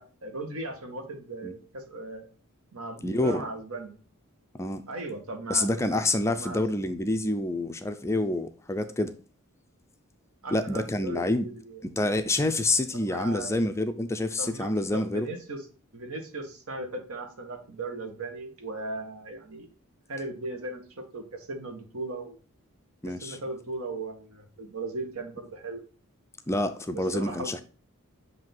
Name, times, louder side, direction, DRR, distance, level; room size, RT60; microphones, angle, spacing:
voice 1, 0.0-2.3 2.7-3.9 4.9-5.7 6.3-6.9 10.4-11.8 13.0-13.5 14.4-15.6 15.9-19.7 20.1-22.4 23.0-25.8 27.1-27.6, right 2 dB, 75° right, 1.4 m, -37 dB
voice 2, 3.0-3.4 4.5-4.8 5.5-9.1 10.5-11.5 11.8-15.3 23.0-23.4 26.5-27.6, left 2 dB, 15° left, 0.4 m, -27 dB
7.4 x 2.8 x 5.9 m
head